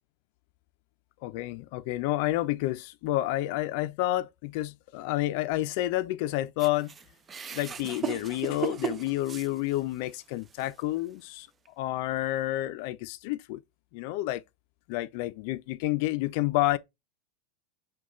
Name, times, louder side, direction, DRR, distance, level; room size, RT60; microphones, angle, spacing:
voice 1, 1.2-6.9 7.5-11.5 11.8-13.6 13.9-14.4 14.9-16.8, left 16 dB, 60° left, 0.4 m, -29 dB
sound 1, 6.6-10.1 10.6-10.7 11.7-11.8, right 8 dB, 25° right, 0.4 m, -36 dB
6.2 x 2.3 x 3.0 m
hypercardioid pair, 110°, 0 cm